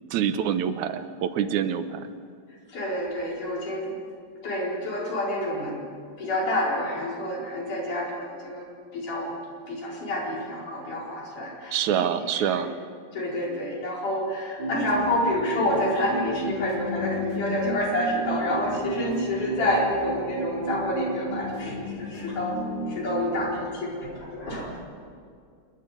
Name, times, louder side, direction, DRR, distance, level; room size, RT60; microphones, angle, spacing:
voice 1, 0.1-2.1 11.7-12.8, right 9 dB, 75° right, 10 dB, 2.2 m, -26 dB
voice 2, 2.7-4.0 4.4-5.8 6.2-8.6 8.9-9.3 9.7-12.1 12.3-12.6 13.1-24.8, left 1 dB, 90° left, -4 dB, 6.5 m, -28 dB
sound 1, 14.6-23.6, right 1 dB, 35° right, 4.4 m, -33 dB
27.0 x 22.0 x 5.2 m, 2.2 s
omnidirectional pair, 3.5 m